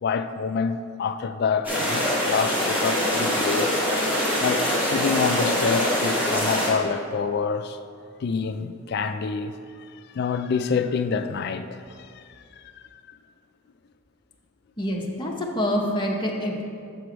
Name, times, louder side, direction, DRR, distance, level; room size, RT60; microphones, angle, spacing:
voice 1, 0.0-3.8 4.4-7.8 8.2-9.5 9.9-12.2 12.5-13.2, left 5 dB, 50° left, 0.3 m, -27 dB
sound 1, 1.6-6.7, equal, 10° right, 1.8 m, -24 dB
voice 2, 14.8-16.6, equal, 20° left, 0.7 m, -26 dB
6.8 x 4.7 x 5.0 m
head